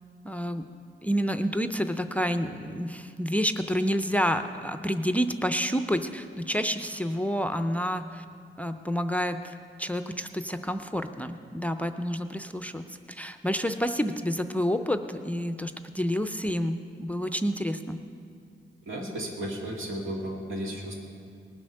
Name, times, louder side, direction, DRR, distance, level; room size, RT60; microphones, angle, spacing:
voice 1, 0.2-0.7 1.0-8.2 8.6-18.0, equal, 5° left, 8 dB, 0.4 m, -29 dB
voice 2, 18.9-20.9, right 1 dB, 90° right, -1 dB, 2.4 m, -34 dB
19.0 x 7.7 x 6.4 m, 2.3 s
wide cardioid pair, 140°, 20 cm